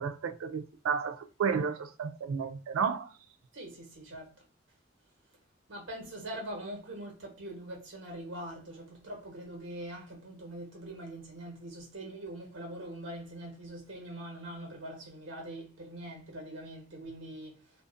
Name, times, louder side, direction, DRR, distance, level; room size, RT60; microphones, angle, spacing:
voice 1, 0.0-3.1, right 6 dB, 90° right, 0.4 m, -32 dB
voice 2, 3.5-4.3 5.7-17.6, right 1 dB, 65° right, 1.1 m, -43 dB
2.4 x 2.4 x 2.5 m
head